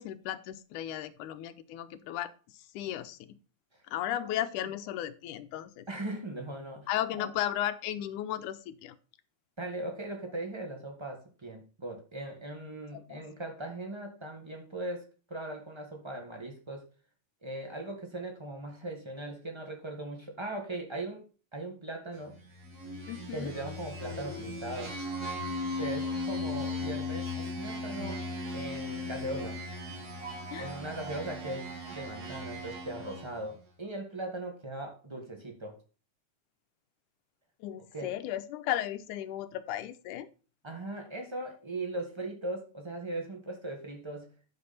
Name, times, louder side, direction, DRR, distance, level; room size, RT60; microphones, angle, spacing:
voice 1, 0.0-3.4 3.8-5.9 6.9-9.0 12.9-13.3 23.1-23.5 30.5-30.7 37.6-40.3, left 12 dB, 85° left, 11 dB, 2.2 m, -35 dB
voice 2, 5.9-6.9 7.1-7.3 9.6-16.8 17.4-21.2 21.5-22.4 23.3-25.0 25.7-28.2 28.5-29.6 30.6-35.8 37.9-38.1 40.6-44.3, right 1 dB, 15° right, 3 dB, 0.9 m, -39 dB
sound 1, 22.6-33.5, left 2 dB, 35° right, 2.3 m, -37 dB
9.6 x 6.7 x 4.2 m, 0.35 s
omnidirectional pair, 3.5 m